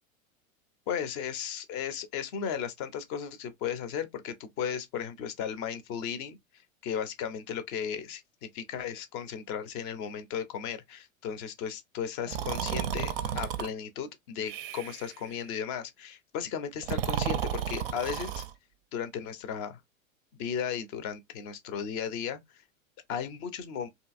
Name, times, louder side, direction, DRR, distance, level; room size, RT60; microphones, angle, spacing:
voice 1, 0.9-6.4 6.8-18.4 18.9-19.8 20.4-22.4 23.1-23.9, left 8 dB, 35° left, 0.6 m, -35 dB
Breathing, 12.3-13.7 14.5-15.1 16.8-18.5, right 9 dB, 45° right, 0.4 m, -32 dB
2.7 x 2.7 x 2.4 m
figure-of-eight pair, 95°, 42 cm